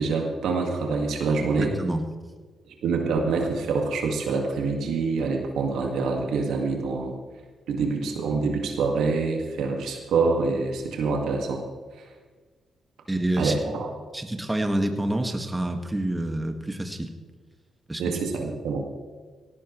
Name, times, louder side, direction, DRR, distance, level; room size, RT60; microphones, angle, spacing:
voice 1, 0.0-1.7 2.8-7.1 7.7-11.6 13.4-13.9 18.0-18.8, right 4 dB, 80° right, 2 dB, 1.9 m, -26 dB
voice 2, 1.4-2.1 13.1-13.6 14.1-17.1 17.9-18.1, right 1 dB, 20° right, 5 dB, 1.8 m, -28 dB
17.5 x 14.5 x 3.2 m, 1.4 s
supercardioid pair, 50°, 0 cm